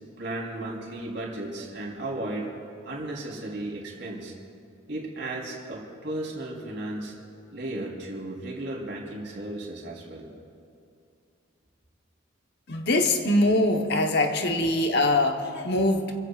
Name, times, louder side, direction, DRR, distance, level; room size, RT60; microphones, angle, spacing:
voice 1, 0.2-2.5 2.8-4.3 4.9-7.1 7.5-10.3, right 1 dB, 55° right, -2 dB, 3.7 m, -35 dB
voice 2, 12.7-16.1, left 2 dB, 55° left, 4 dB, 1.1 m, -23 dB
28.5 x 15.5 x 2.5 m, 2.5 s
head